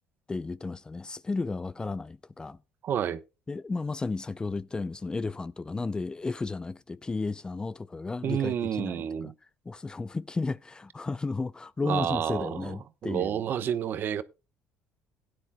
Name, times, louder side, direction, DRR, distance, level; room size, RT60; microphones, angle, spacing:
voice 1, 0.3-2.6 3.5-9.3 9.7-13.4, left 3 dB, 20° left, 0.5 m, -33 dB
voice 2, 2.8-3.2 8.2-9.3 11.8-12.8 13.0-14.2, right 9 dB, 55° right, 1.0 m, -29 dB
16.5 x 9.9 x 2.3 m
supercardioid pair, 90°, 4 cm